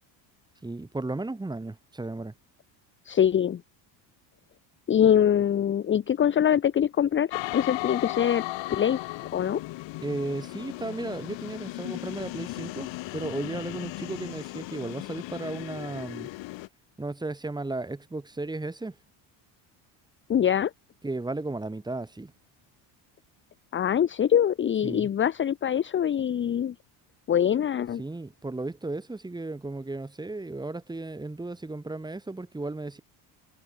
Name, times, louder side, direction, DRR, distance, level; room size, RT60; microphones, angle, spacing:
voice 1, 0.6-2.3 10.0-16.3 17.0-19.0 21.0-22.3 24.8-25.1 28.0-33.0, right 2 dB, 10° right, 6.0 m, -35 dB
voice 2, 3.1-3.6 4.9-8.4 8.7-9.0 9.3-9.6 20.3-20.7 23.7-26.7 27.3-28.0, left 9 dB, 25° left, 0.9 m, -23 dB
sound 1, 7.3-16.7, left 20 dB, 70° left, 3.1 m, -36 dB
cardioid pair, 160°, 46 cm